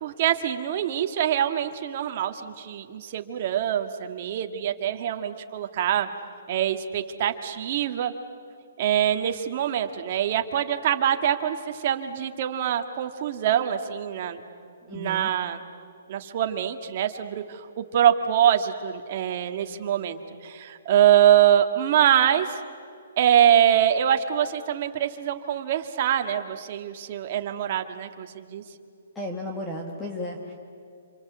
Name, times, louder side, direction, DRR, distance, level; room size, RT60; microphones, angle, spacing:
voice 1, 0.0-6.1 6.5-8.1 8.8-14.4 14.9-15.6 16.1-22.6 23.2-28.6, right 10 dB, 35° right, 6 dB, 1.7 m, -24 dB
voice 2, 14.9-15.3 29.1-30.5, left 1 dB, 5° left, 0 dB, 1.5 m, -34 dB
27.5 x 27.0 x 8.0 m, 2.4 s
hypercardioid pair, 170°, 0 cm